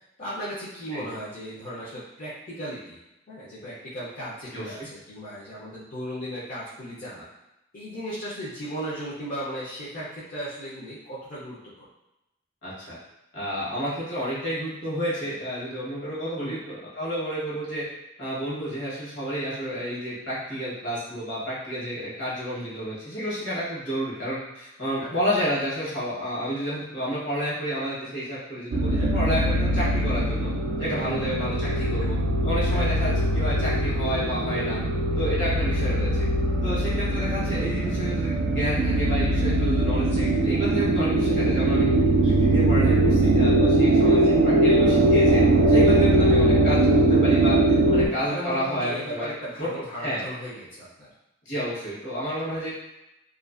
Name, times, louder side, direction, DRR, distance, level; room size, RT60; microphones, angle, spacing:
voice 1, 0.2-3.0 3.3-7.3 7.7-11.9 16.4-16.6 25.0-25.1 30.9-31.2 31.7-31.8 32.7-33.0 40.0-40.3 47.8-51.1 52.1-52.6, equal, 45° left, -10 dB, 0.5 m, -36 dB
voice 2, 12.6-13.0 13.3-17.8 18.2-30.5 30.8-32.1 32.4-34.8 35.2-36.3 36.6-41.9 42.2-45.4 45.7-49.3 49.6-49.7 50.0-50.2 51.4-52.7, equal, 65° left, -8 dB, 1.1 m, -30 dB
sound 1, 28.7-48.1, right 1 dB, 65° right, 0.3 m, -21 dB
2.4 x 2.4 x 2.4 m, 0.91 s
head